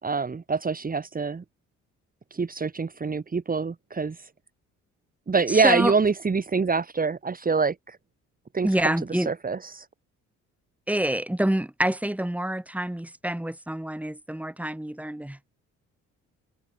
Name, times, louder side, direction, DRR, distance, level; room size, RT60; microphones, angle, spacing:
voice 1, 0.0-1.4 2.3-4.3 5.3-8.0 8.5-9.9, right 4 dB, 30° right, 2.5 m, -25 dB
voice 2, 5.5-5.9 8.6-9.3 10.9-15.4, right 1 dB, 5° right, 3.9 m, -27 dB
cardioid pair, 90°, 30 cm